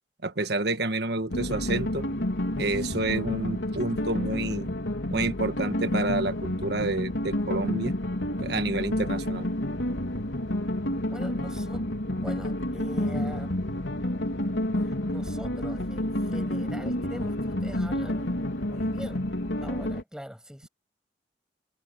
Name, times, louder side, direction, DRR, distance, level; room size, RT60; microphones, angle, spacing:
voice 1, 0.2-2.0 2.6-4.7 5.1-7.9 8.4-9.5, right 2 dB, 65° right, 1.5 m, -29 dB
sound 1, 1.3-20.0, left 1 dB, 90° left, 3.4 m, -29 dB
voice 2, 11.1-13.9 14.6-19.3 19.6-20.7, equal, 5° right, 8.0 m, -42 dB
head